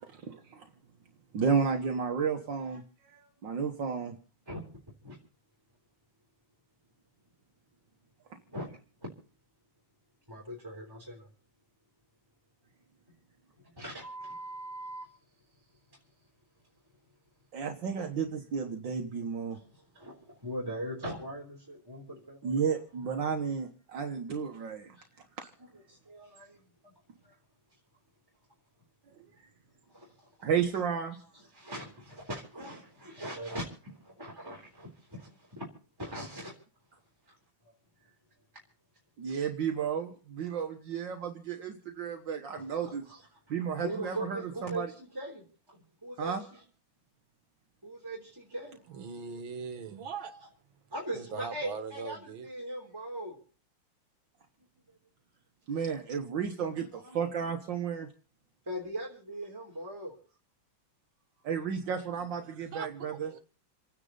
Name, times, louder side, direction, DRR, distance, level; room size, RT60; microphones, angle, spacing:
voice 1, 0.0-0.7 1.3-4.1 17.5-19.6 22.4-25.0 25.4-25.5 29.2-29.3 30.4-31.2 39.2-43.0 43.5-44.9 46.2-46.4 55.7-58.1 61.4-63.3, right 6 dB, 70° right, 1.9 m, -32 dB
voice 2, 10.3-11.3 13.6-15.1 15.9-16.0 17.9-18.0 19.5-22.5 25.0-25.1 25.6-26.9 27.2-27.4 29.9-30.2 31.3-35.6 36.0-36.5 37.3-37.4 42.6-43.2 43.8-45.4 46.0-46.6 47.8-49.2 50.2-50.4 50.9-53.4 54.9-55.0 56.7-57.2 58.7-60.2, right 1 dB, 10° right, 3.6 m, -41 dB
voice 3, 48.9-50.3 51.1-52.5 62.5-63.4, right 6 dB, 85° right, 2.1 m, -41 dB
28.5 x 9.8 x 4.0 m
omnidirectional pair, 2.1 m